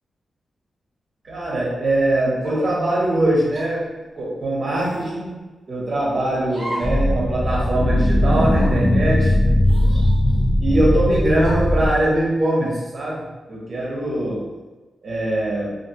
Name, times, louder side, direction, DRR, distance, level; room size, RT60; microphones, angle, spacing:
voice 1, 1.2-3.9 4.1-5.3 5.7-9.3 10.6-14.4 15.0-15.7, right 1 dB, 50° right, -5 dB, 1.0 m, -22 dB
sound 1, 2.4-2.8 3.5-3.7 4.7-5.1 6.5-7.0 7.3-7.4 8.3-8.7 9.6-10.6 11.4-11.8, equal, 25° right, 1.0 m, -36 dB
sound 2, 6.8-11.9, left 1 dB, 35° left, 0.4 m, -18 dB
2.6 x 2.5 x 2.7 m, 1.2 s
wide cardioid pair, 100°, 0 cm